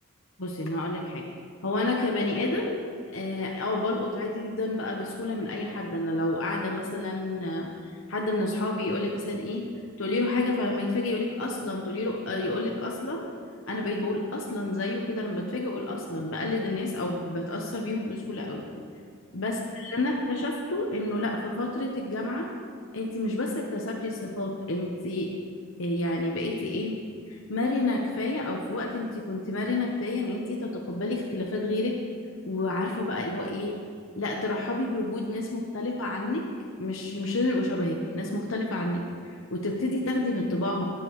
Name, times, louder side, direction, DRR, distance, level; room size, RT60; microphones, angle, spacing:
voice 1, 0.4-1.2 1.6-2.8 3.1-7.7 8.1-9.6 10.0-13.3 13.7-18.6 19.3-22.5 22.9-25.3 25.8-27.0 27.3-32.0 32.5-33.8 34.2-36.4 36.8-40.8, left 2 dB, 70° left, -1 dB, 1.0 m, -29 dB
22.5 x 7.6 x 3.1 m, 2.2 s
head